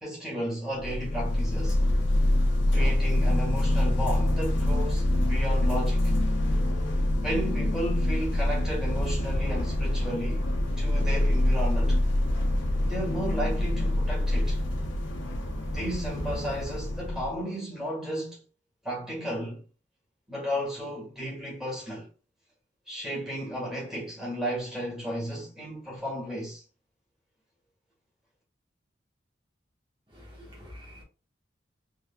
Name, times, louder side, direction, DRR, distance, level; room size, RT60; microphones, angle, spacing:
voice 1, 0.0-1.8 2.7-6.0 7.2-10.5 10.8-12.0 12.8-14.6 15.7-18.4 18.8-19.6 20.3-22.1 22.9-26.6, equal, 5° right, 1.7 m, -33 dB
sound 1, 0.8-17.4, left 1 dB, 80° left, 0.9 m, -25 dB
voice 2, 30.1-31.0, equal, 25° right, 1.4 m, -47 dB
3.7 x 3.2 x 2.3 m
head